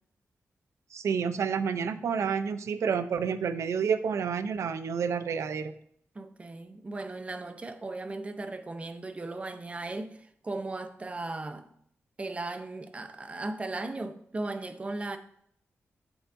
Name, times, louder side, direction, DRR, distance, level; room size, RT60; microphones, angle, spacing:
voice 1, 0.9-5.7, right 6 dB, 85° right, 0.5 m, -29 dB
voice 2, 6.1-11.7 12.2-15.2, right 2 dB, 25° right, 0.6 m, -37 dB
8.1 x 7.0 x 2.6 m
wide cardioid pair, 130°, 5 cm